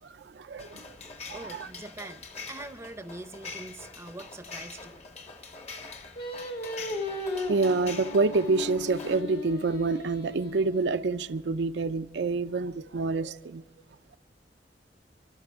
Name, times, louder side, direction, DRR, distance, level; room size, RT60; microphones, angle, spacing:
voice 1, 0.0-1.0 1.3-1.7 7.5-13.6, right 3 dB, 70° right, 0.5 m, -27 dB
sound 1, 0.6-9.2, left 4 dB, 35° left, 1.2 m, -44 dB
voice 2, 1.3-5.0, right 2 dB, 15° right, 0.6 m, -43 dB
Singing, 6.2-11.4, left 2 dB, 60° left, 2.0 m, -37 dB
26.5 x 12.0 x 3.6 m
head